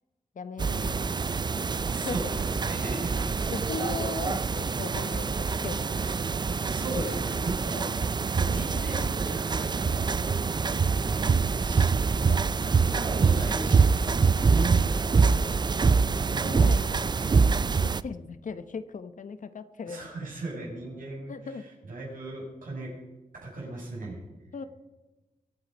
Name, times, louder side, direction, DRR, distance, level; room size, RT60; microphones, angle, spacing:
voice 1, 0.3-1.1 1.9-2.2 3.5-6.1 7.7-8.1 8.7-8.8 12.3-12.6 15.2-15.6 16.3-17.0 17.8-20.1 21.3-21.6 24.5-24.6, left 5 dB, 65° left, 11 dB, 0.9 m, -38 dB
sound 1, 0.6-18.0, right 5 dB, 30° right, 0.4 m, -25 dB
voice 2, 1.9-3.5 6.4-11.3 11.6-12.2 12.5-14.0 14.3-15.1 19.9-21.6 21.9-22.9 23.3-24.2, right 2 dB, 75° right, -3 dB, 6.4 m, -37 dB
23.0 x 8.8 x 5.4 m, 1.2 s
wide cardioid pair, 125°, 14 cm